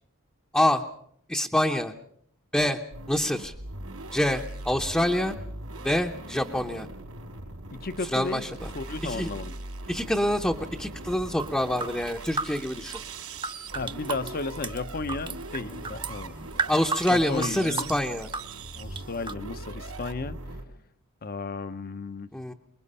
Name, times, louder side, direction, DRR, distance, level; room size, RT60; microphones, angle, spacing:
voice 1, 1.3-1.9 2.5-2.8 3.1-3.5 4.1-5.4 5.8-6.9 8.1-8.7 9.0-9.3 9.9-13.0 16.7-18.3 22.3-22.5, left 1 dB, 5° left, 0.8 m, -26 dB
sound 1, 2.9-20.6, right 2 dB, 85° right, 4.6 m, -40 dB
voice 2, 7.7-8.5 8.7-9.5 13.7-16.4 17.1-18.0 18.8-20.4 21.2-22.3, left 3 dB, 45° left, 0.8 m, -34 dB
sound 2, 11.4-19.3, right 3 dB, 25° right, 0.9 m, -34 dB
25.0 x 21.5 x 5.6 m
head